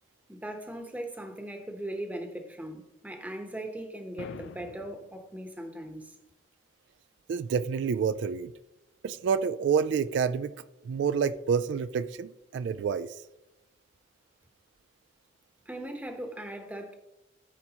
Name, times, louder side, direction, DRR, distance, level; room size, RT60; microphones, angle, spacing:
voice 1, 0.3-6.1 15.7-16.9, right 1 dB, 10° right, 0.9 m, -39 dB
uncompressed cannon, 4.2-5.2, left 5 dB, 70° left, 0.4 m, -44 dB
voice 2, 7.3-8.5 9.0-10.5 10.9-13.2, right 6 dB, 70° right, 0.3 m, -28 dB
13.5 x 4.7 x 2.9 m
head